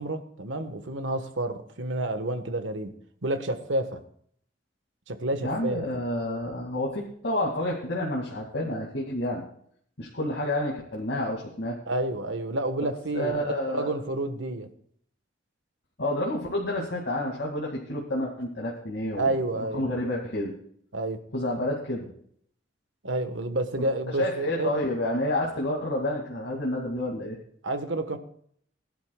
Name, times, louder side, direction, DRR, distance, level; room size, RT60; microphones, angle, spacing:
voice 1, 0.0-2.9 3.2-4.0 5.1-5.8 11.9-14.7 19.1-19.8 20.9-21.2 23.0-24.8 27.6-28.2, right 2 dB, 90° right, 7 dB, 1.4 m, -29 dB
voice 2, 5.4-9.4 10.0-11.8 13.1-13.9 16.0-20.5 21.3-22.1 24.2-27.4, left 1 dB, 75° left, -3 dB, 2.3 m, -29 dB
21.0 x 11.5 x 2.4 m, 0.62 s
head